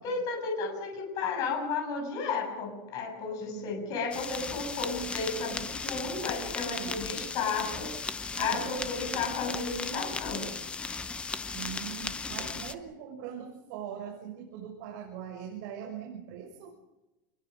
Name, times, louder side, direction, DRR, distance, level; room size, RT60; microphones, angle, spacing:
voice 1, 0.0-10.5, left 4 dB, 35° left, 3 dB, 7.1 m, -33 dB
voice 2, 3.4-4.0 6.7-7.1 8.4-8.7 11.5-16.7, right 8 dB, 50° right, 0 dB, 6.3 m, -41 dB
sound 1, 4.1-12.7, left 4 dB, 10° left, 0.8 m, -36 dB
28.0 x 22.0 x 6.3 m, 1.0 s
supercardioid pair, 175°, 11 cm